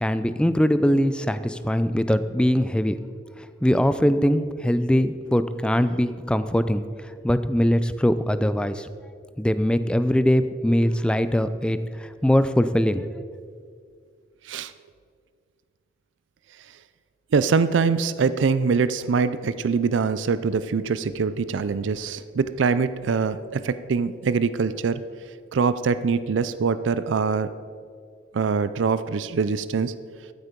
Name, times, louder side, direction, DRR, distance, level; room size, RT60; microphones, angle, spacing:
voice 1, 0.0-3.0 3.6-8.9 9.4-11.8 12.2-13.0, equal, 5° left, 12 dB, 0.4 m, -22 dB
voice 2, 17.3-25.0 25.5-27.5 28.3-29.9, right 5 dB, 80° right, 14 dB, 0.4 m, -23 dB
13.0 x 8.1 x 5.2 m, 2.2 s
head